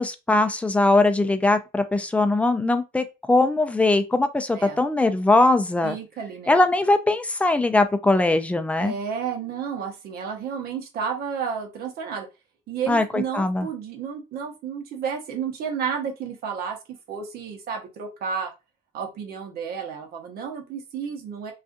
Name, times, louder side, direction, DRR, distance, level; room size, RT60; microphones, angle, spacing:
voice 1, 0.0-6.0 6.5-8.9 12.9-13.7, left 2 dB, 10° left, 0.3 m, -21 dB
voice 2, 5.8-6.6 8.8-12.3 12.7-16.8 17.1-18.5 18.9-21.5, right 6 dB, 65° right, 0.9 m, -31 dB
2.5 x 2.4 x 2.5 m
cardioid pair, 110°, 17 cm